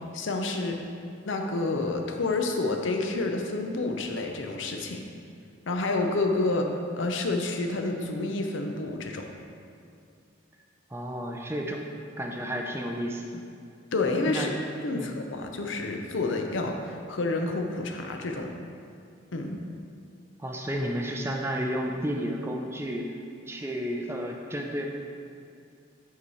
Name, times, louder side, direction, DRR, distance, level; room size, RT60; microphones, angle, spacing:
voice 1, 0.1-0.8 1.2-5.0 5.7-6.7 7.0-9.3 13.9-14.5 14.8-18.5 19.3-19.6, left 2 dB, 70° left, 3 dB, 0.7 m, -29 dB
voice 2, 10.9-11.9 12.2-13.4 14.3-14.6 14.9-15.2 20.4-23.2 23.5-24.9, equal, 10° right, 1 dB, 0.5 m, -32 dB
8.1 x 4.8 x 4.2 m, 2.5 s
head